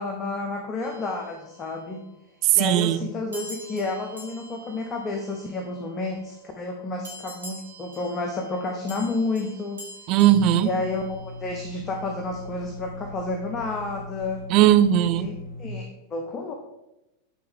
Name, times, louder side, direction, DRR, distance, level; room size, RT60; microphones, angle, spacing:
voice 1, 0.0-2.0 2.5-9.8 10.6-14.4 15.1-15.3 15.6-16.5, left 3 dB, 25° left, 4 dB, 0.7 m, -30 dB
sound 1, 0.8-2.0 3.3-6.0 7.0-11.6, equal, 75° right, 1.5 m, -45 dB
voice 2, 2.4-3.1 10.1-10.7 14.5-15.3, right 12 dB, 40° right, 11 dB, 0.4 m, -18 dB
sound 2, 10.3-15.7, left 2 dB, 55° left, 1.0 m, -39 dB
9.6 x 3.5 x 3.5 m, 0.93 s
figure-of-eight pair, 90°, 0 cm